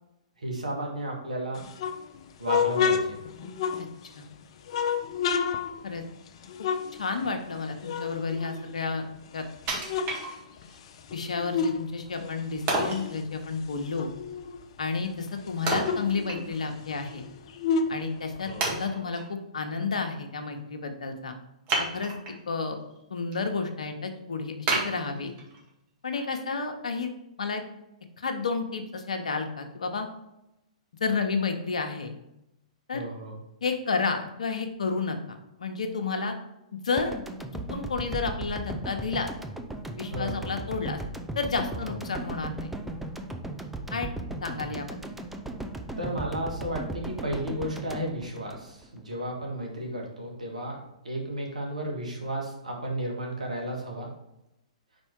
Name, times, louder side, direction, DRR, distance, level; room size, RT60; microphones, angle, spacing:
voice 1, 0.4-1.6 2.4-3.2 18.4-18.7 32.9-33.4 40.1-40.5 41.7-41.9 46.0-54.1, right 1 dB, 85° right, 0 dB, 1.7 m, -33 dB
sound 1, 1.5-4.2 4.7-7.6 7.8-9.2 9.6-11.8 12.1-14.7 15.0-15.1 15.4-18.8, left 6 dB, 50° left, 0.6 m, -31 dB
voice 2, 6.9-9.0 9.3-9.4 11.1-14.1 14.8-17.2 17.9-21.4 21.8-22.1 22.5-22.8 23.1-25.3 26.0-27.1 27.4-27.6 28.2-30.1 31.0-32.1 32.9-33.0 33.6-36.3 36.7-37.1 37.7-39.3 40.0-41.0 41.4-42.7 43.9-44.1 44.4-45.0, left 4 dB, 75° left, 5 dB, 1.0 m, -31 dB
Wood, 9.7-10.8 11.3-11.4 12.7-13.1 15.7-16.8 17.1-17.2 17.9-18.0 18.6-19.3 21.7-22.4 22.9-23.4 23.8-23.9 24.7-25.7 26.2-26.3, right 3 dB, 35° right, 1.9 m, -30 dB
sound 2, 37.0-49.2, right 2 dB, 5° right, 0.5 m, -37 dB
5.3 x 4.5 x 4.6 m, 0.87 s
figure-of-eight pair, 120°, 4 cm